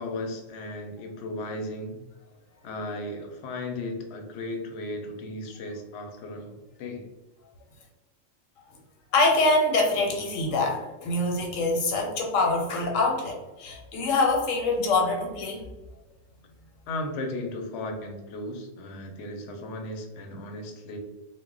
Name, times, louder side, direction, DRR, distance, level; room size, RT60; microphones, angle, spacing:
voice 1, 0.0-2.0 2.6-7.1 16.9-21.0, left 1 dB, 65° left, 3 dB, 0.8 m, -35 dB
voice 2, 9.1-15.6, left 2 dB, 90° left, 1 dB, 1.1 m, -24 dB
2.2 x 2.1 x 3.7 m, 1.1 s
omnidirectional pair, 1.3 m